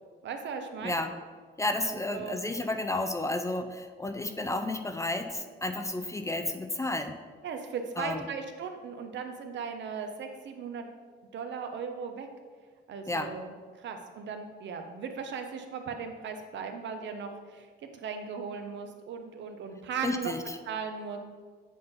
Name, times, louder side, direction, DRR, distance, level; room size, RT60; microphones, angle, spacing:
voice 1, 0.2-1.0 1.9-2.5 7.4-10.9 11.3-12.3 12.9-13.5 13.8-20.3 20.7-21.2, right 6 dB, 70° right, 5 dB, 0.7 m, -37 dB
voice 2, 0.8-1.1 1.6-7.1 8.0-8.2 13.1-13.3 20.0-20.6, left 2 dB, 15° left, 7 dB, 0.4 m, -32 dB
7.7 x 2.6 x 5.3 m, 1.5 s
cardioid pair, 90°, 20 cm